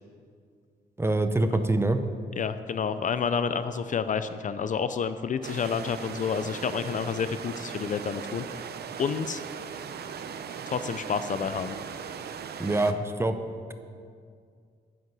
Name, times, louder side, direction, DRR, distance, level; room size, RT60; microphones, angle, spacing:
voice 1, 1.0-2.0 12.6-13.4, right 2 dB, 15° right, 8 dB, 0.6 m, -25 dB
voice 2, 2.4-8.4 9.0-9.4 10.7-11.8, left 6 dB, 45° left, 12 dB, 0.4 m, -29 dB
sound 1, 5.4-12.9, right 7 dB, 65° right, 0.7 m, -38 dB
11.0 x 9.5 x 6.1 m, 2.2 s
wide cardioid pair, 155°, 18 cm